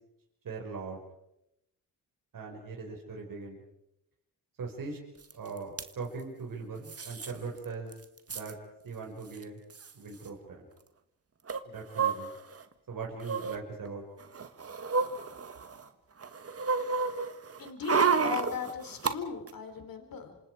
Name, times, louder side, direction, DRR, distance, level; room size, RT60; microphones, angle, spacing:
voice 1, 0.4-1.0 2.3-3.6 4.6-5.0 5.3-7.9 8.3-8.6 8.8-9.6 9.9-10.7 11.6-12.3 12.9-14.0, right 4 dB, 60° right, 0 dB, 5.5 m, -40 dB
sound 1, 5.3-5.4 5.6-5.9 6.9-7.3 7.6-7.7 7.9-8.5 9.4-9.5 9.7-9.9 11.5-12.6 13.2-13.6 14.2-15.8 16.2-19.1 19.5-19.6, right 5 dB, 40° right, 1.7 m, -31 dB
voice 2, 17.6-20.4, left 5 dB, 65° left, 6 dB, 3.9 m, -38 dB
27.0 x 26.0 x 4.9 m, 0.83 s
cardioid pair, 65°, 37 cm